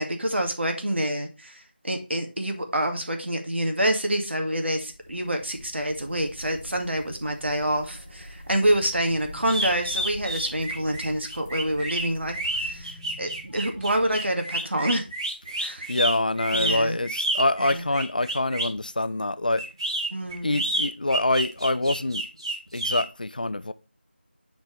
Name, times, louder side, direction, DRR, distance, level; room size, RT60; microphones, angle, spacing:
voice 1, 0.0-15.0 15.6-15.9 16.5-17.0 17.6-17.8 20.1-20.7, right 1 dB, 80° right, 1.9 m, -27 dB
sound 1, 4.7-12.8, left 1 dB, 15° left, 0.7 m, -45 dB
sound 2, 7.5-11.4 11.7-15.1, left 1 dB, 5° right, 1.3 m, -49 dB
sound 3, 9.5-18.8 19.6-23.0, right 1 dB, 25° right, 1.3 m, -29 dB
voice 2, 15.5-19.6 20.4-22.3 22.7-23.7, left 2 dB, 50° left, 0.4 m, -25 dB
8.7 x 4.4 x 3.3 m
figure-of-eight pair, 175°, 6 cm